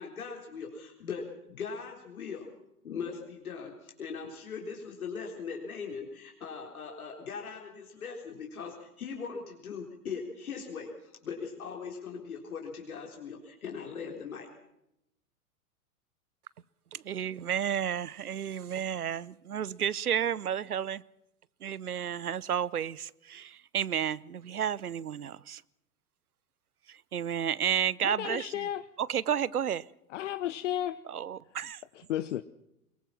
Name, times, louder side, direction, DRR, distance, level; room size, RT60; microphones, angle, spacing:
voice 1, 0.0-2.5 2.8-14.5, left 5 dB, 65° left, 4.0 m, -40 dB
voice 2, 16.9-21.0 21.6-25.6 26.9-28.7 29.0-29.9 31.1-31.8, right 9 dB, 75° right, 0.9 m, -32 dB
voice 3, 28.0-28.9 30.1-31.0 31.9-32.4, left 12 dB, 50° left, 1.0 m, -33 dB
23.5 x 22.0 x 5.7 m
figure-of-eight pair, 100°, 45 cm